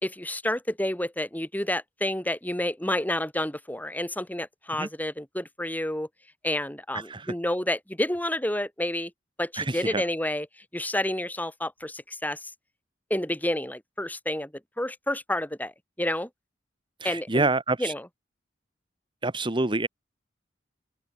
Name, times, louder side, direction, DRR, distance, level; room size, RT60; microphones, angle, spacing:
voice 1, 0.0-6.1 6.4-9.1 9.4-10.5 10.7-12.5 13.1-14.5 14.8-15.7 16.0-16.3 17.0-17.5 17.8-18.1, left 1 dB, 10° left, 3.9 m, -29 dB
voice 2, 6.9-7.3 9.6-10.0 17.0-17.9 19.2-19.9, right 2 dB, 25° right, 1.5 m, -27 dB
open air
head